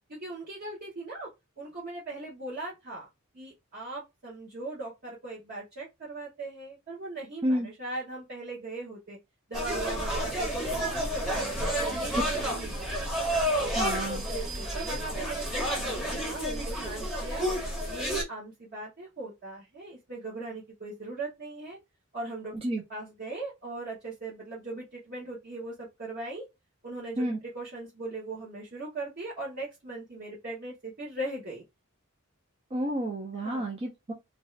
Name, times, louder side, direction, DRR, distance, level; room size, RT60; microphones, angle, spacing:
voice 1, 0.1-1.3 1.6-3.1 3.3-9.2 9.5-12.9 14.3-17.5 17.9-21.8 22.1-22.5 22.9-26.5 26.8-31.6 33.3-33.7, right 2 dB, 45° right, 1.0 m, -39 dB
sound 1, 9.5-18.2, equal, ahead, 0.8 m, -30 dB
voice 2, 13.7-14.2 22.6-22.8 27.2-27.4 32.7-34.1, right 1 dB, 25° right, 0.5 m, -30 dB
2.6 x 2.3 x 3.1 m
head